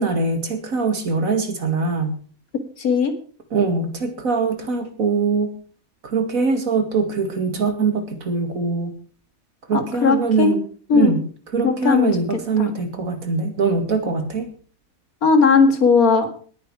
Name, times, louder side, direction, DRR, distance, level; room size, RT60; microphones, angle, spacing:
voice 1, 0.0-2.2 3.5-5.5 6.0-8.9 9.7-10.6 10.9-11.2 11.5-14.5, right 4 dB, 70° right, 7 dB, 2.6 m, -22 dB
voice 2, 2.8-3.1 9.7-10.5 10.9-11.1 11.6-12.2 12.6-12.7 15.2-16.3, left 5 dB, 80° left, 8 dB, 2.5 m, -17 dB
19.0 x 9.7 x 4.8 m, 0.42 s
omnidirectional pair, 1.5 m